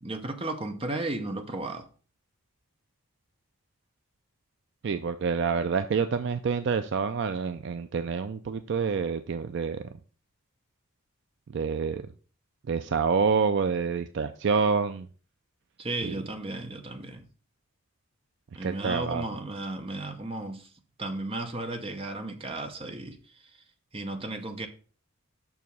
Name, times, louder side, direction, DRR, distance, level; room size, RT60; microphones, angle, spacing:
voice 1, 0.0-1.9 15.8-17.2 18.6-20.7 21.0-23.6 23.9-24.7, right 2 dB, 25° right, 0.8 m, -34 dB
voice 2, 4.8-9.8 11.5-12.0 12.7-15.1 16.0-16.2 18.6-19.2, right 5 dB, 50° right, 0.3 m, -27 dB
6.1 x 4.7 x 5.3 m
head